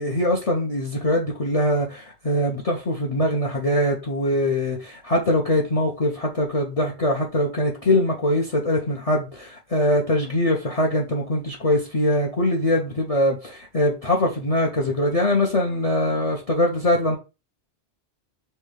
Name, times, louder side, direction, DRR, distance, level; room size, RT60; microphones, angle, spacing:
voice 1, 0.0-17.2, left 1 dB, 40° left, 0.6 m, -22 dB
5.4 x 2.2 x 3.2 m
omnidirectional pair, 1.1 m